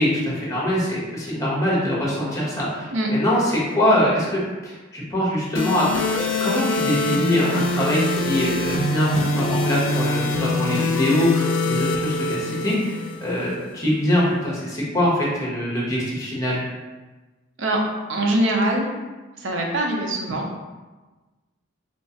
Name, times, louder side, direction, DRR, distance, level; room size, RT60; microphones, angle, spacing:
voice 1, 0.0-16.6, left 1 dB, 15° left, -6 dB, 1.0 m, -23 dB
sound 1, 5.6-13.5, left 2 dB, 75° left, 0.4 m, -24 dB
voice 2, 18.1-18.9 19.4-20.6, right 1 dB, 70° right, 1 dB, 0.6 m, -23 dB
3.3 x 3.1 x 2.8 m, 1.2 s
head